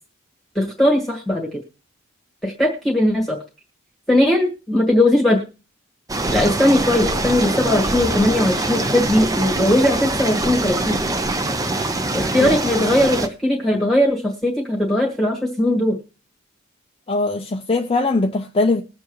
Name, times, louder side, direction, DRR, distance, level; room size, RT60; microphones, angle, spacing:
voice 1, 0.5-1.6 2.4-3.4 4.1-5.4 6.3-11.0 12.1-16.0, left 1 dB, ahead, 1.6 m, -19 dB
sound 1, 6.1-13.3, right 2 dB, 15° right, 0.6 m, -23 dB
voice 2, 17.1-18.8, left 3 dB, 25° left, 0.5 m, -21 dB
21.0 x 7.1 x 3.1 m
head